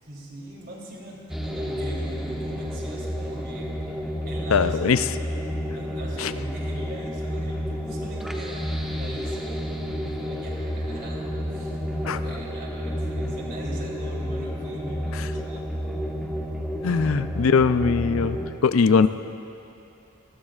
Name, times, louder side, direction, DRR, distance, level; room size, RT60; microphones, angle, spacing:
voice 1, 0.0-3.7 4.2-4.9 5.6-9.6 9.9-15.7 18.9-19.1, right 1 dB, 50° right, -3 dB, 3.5 m, -41 dB
sound 1, 1.3-18.5, equal, ahead, 1.2 m, -30 dB
voice 2, 4.5-5.0 6.2-6.3 12.1-12.2 16.8-19.1, left 5 dB, 80° left, 12 dB, 0.5 m, -21 dB
26.5 x 19.0 x 2.5 m, 2.7 s
head